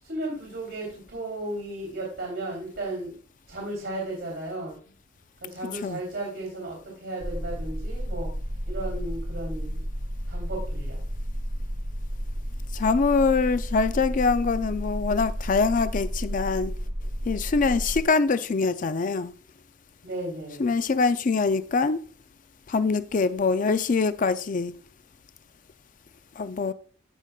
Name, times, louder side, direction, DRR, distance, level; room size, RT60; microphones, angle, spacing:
voice 1, 0.0-3.1 3.5-4.9 5.4-8.3 8.7-9.8 10.3-11.0 20.0-20.7, right 2 dB, 70° right, 3.0 m, -34 dB
sound 1, 7.2-18.0, equal, 40° right, 1.4 m, -32 dB
voice 2, 12.7-16.7 17.3-19.3 20.6-22.0 22.7-24.7 26.4-26.7, left 4 dB, 45° left, 0.5 m, -24 dB
15.0 x 5.2 x 2.4 m
head